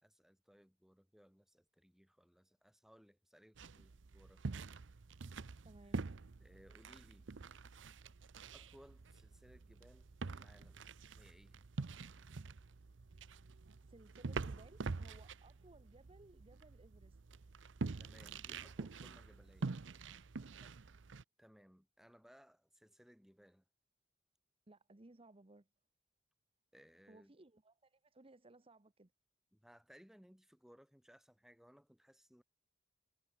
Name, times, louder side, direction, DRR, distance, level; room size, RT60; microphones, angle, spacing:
voice 1, 0.0-4.6 6.4-7.3 8.5-10.8 11.2-11.6 18.0-19.7 21.4-23.6 26.7-27.3 29.5-32.4, equal, ahead, 2.3 m, -64 dB
sound 1, 3.6-21.2, right 4 dB, 85° right, 0.7 m, -46 dB
voice 2, 5.6-6.1 13.8-17.2 20.6-20.7 24.7-25.7 27.1-29.1, right 2 dB, 30° right, 1.0 m, -62 dB
head